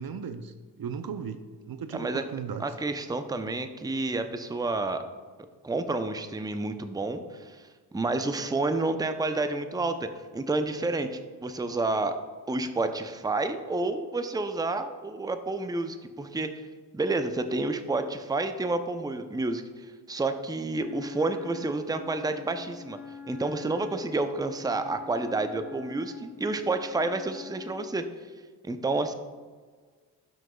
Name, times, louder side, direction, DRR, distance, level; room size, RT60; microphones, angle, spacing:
voice 1, 0.0-2.7, right 6 dB, 50° right, 9 dB, 0.6 m, -36 dB
voice 2, 1.9-2.3 2.6-5.0 5.6-7.6 7.9-12.2 12.5-16.5 16.9-19.6 20.1-23.0 23.3-28.0 28.6-29.1, right 2 dB, 10° right, 8 dB, 0.6 m, -29 dB
Wind instrument woodwind instrument, 20.7-27.9, left 5 dB, 75° left, 1.1 m, -45 dB
11.5 x 6.3 x 2.3 m, 1.5 s
supercardioid pair, 45°, 46 cm